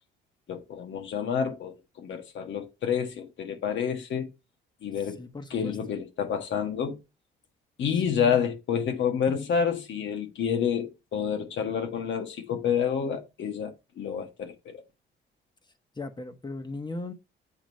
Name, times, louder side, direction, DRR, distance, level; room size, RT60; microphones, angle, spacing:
voice 1, 0.5-4.3 4.8-5.2 5.5-7.0 7.8-14.8, left 7 dB, 70° left, 1.5 m, -29 dB
voice 2, 5.0-5.8 8.0-8.4 15.9-17.1, left 2 dB, 20° left, 1.2 m, -38 dB
7.8 x 3.0 x 5.3 m
cardioid pair, 90°, 20 cm